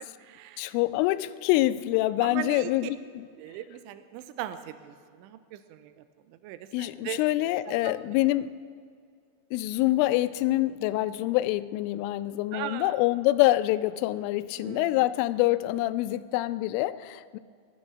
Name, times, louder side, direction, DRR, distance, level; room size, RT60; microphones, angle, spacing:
voice 1, 0.0-0.7 2.2-2.9 3.4-5.9 6.4-7.2 7.7-7.8 12.5-13.0 14.6-14.9, right 12 dB, 85° right, 11 dB, 3.0 m, -39 dB
voice 2, 0.6-3.3 6.7-8.5 9.5-17.4, left 16 dB, 85° left, 14 dB, 3.1 m, -26 dB
18.0 x 12.0 x 6.2 m, 2.2 s
omnidirectional pair, 5.7 m